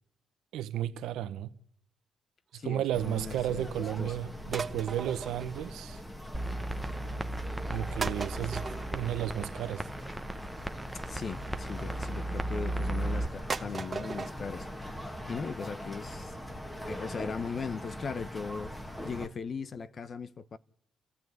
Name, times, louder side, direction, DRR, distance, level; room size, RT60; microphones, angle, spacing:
voice 1, 0.5-1.5 2.5-6.0 7.7-9.9, right 11 dB, 85° right, 1.0 m, -33 dB
voice 2, 2.6-4.2 11.1-16.4 16.9-18.7 19.0-20.6, left 5 dB, 45° left, 0.9 m, -39 dB
sound 1, 2.9-19.3, equal, 10° left, 1.8 m, -42 dB
sound 2, 4.5-6.2 6.5-7.0 7.6-7.7 8.0-11.6 12.3-12.8 13.1-13.2 13.5-14.4 14.7-14.8 15.1-15.2 15.5-15.6 15.9-16.0 16.3-16.4 16.7-16.8 17.2-17.3 17.6-17.7, right 4 dB, 30° right, 1.2 m, -39 dB
sound 3, 6.3-13.3, right 1 dB, 5° right, 1.0 m, -36 dB
29.5 x 14.0 x 9.5 m
cardioid pair, 90°, 0 cm